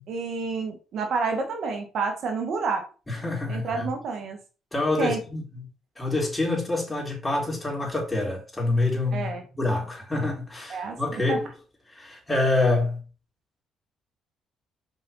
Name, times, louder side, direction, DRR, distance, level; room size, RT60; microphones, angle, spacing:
voice 1, 0.1-2.8 3.5-4.4 5.0-5.2 9.1-9.4 10.7-11.4, right 4 dB, 65° right, 1.5 m, -29 dB
voice 2, 3.1-3.9 4.7-5.6 6.0-9.3 9.6-11.5 11.9-13.0, left 2 dB, 15° left, 3.7 m, -26 dB
5.4 x 5.3 x 4.1 m
supercardioid pair, 75°, 0 cm